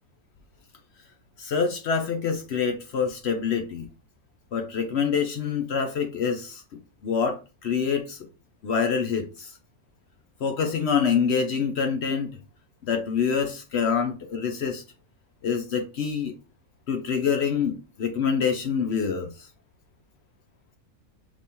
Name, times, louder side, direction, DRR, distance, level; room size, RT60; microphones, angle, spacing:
voice 1, 1.4-3.9 4.5-6.6 7.0-8.3 8.6-9.5 10.4-12.4 12.8-14.8 15.4-16.3 16.9-19.5, left 6 dB, 60° left, 0.7 m, -26 dB
5.2 x 3.3 x 2.8 m
omnidirectional pair, 1.6 m